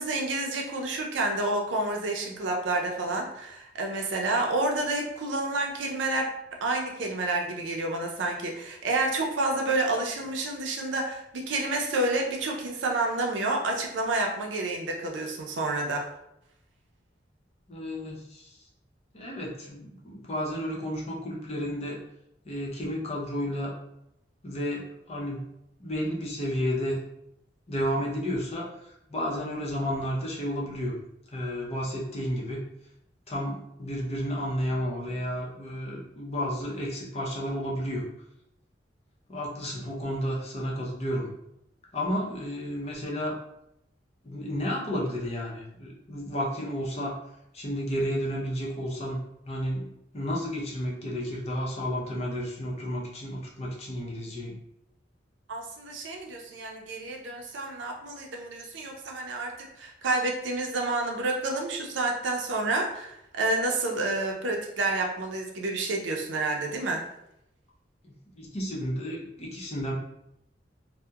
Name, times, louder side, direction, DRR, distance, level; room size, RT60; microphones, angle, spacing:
voice 1, 0.0-16.1 55.5-67.0, right 2 dB, 90° right, 1 dB, 0.5 m, -29 dB
voice 2, 17.7-18.6 19.1-22.0 22.4-23.7 24.4-25.4 25.8-27.0 27.7-31.0 31.3-32.6 33.3-38.1 39.3-41.3 41.9-43.4 44.2-47.2 47.5-49.9 50.1-54.6 68.0-69.9, equal, 35° left, -3 dB, 0.6 m, -32 dB
2.7 x 2.1 x 2.3 m, 0.81 s
head